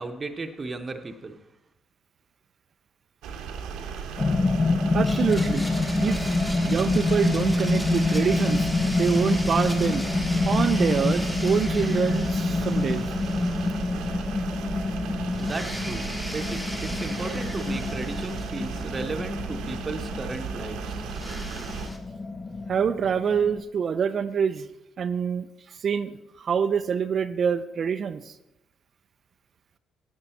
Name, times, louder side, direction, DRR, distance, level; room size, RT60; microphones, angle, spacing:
voice 1, 0.0-1.4 15.4-16.1 16.3-21.1, right 3 dB, 35° right, 6 dB, 0.9 m, -35 dB
sound 1, 3.2-21.9, right 6 dB, 75° right, 0.9 m, -36 dB
sound 2, 4.2-23.6, left 3 dB, 35° left, 0.8 m, -27 dB
voice 2, 4.9-5.7 6.0-6.3 6.6-8.7 9.0-10.0 10.4-13.1 22.7-24.7 25.0-28.4, right 7 dB, 55° right, 12 dB, 0.4 m, -26 dB
Domestic sounds home sounds, 5.0-14.2 14.5-14.6 15.3-19.3 21.1-22.0, equal, 5° left, 1.5 m, -39 dB
9.8 x 7.9 x 4.1 m, 0.90 s
hypercardioid pair, 50°, 0 cm